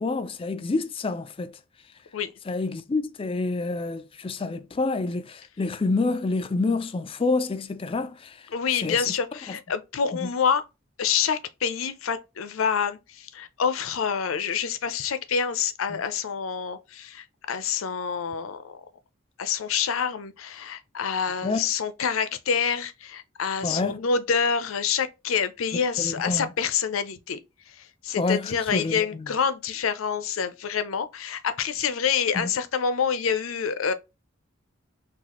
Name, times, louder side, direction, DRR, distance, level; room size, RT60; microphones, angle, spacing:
voice 1, 0.0-1.5 2.5-8.4 8.8-9.0 9.5-9.6 10.1-10.3 15.9-16.0 21.4-21.6 23.6-24.0 26.0-26.5 28.2-29.3 32.3-32.5, left 3 dB, 25° left, 0.4 m, -28 dB
voice 2, 8.5-10.6 11.0-18.6 19.4-27.4 27.7-33.9, left 6 dB, 85° left, 0.5 m, -27 dB
4.0 x 2.4 x 2.9 m
head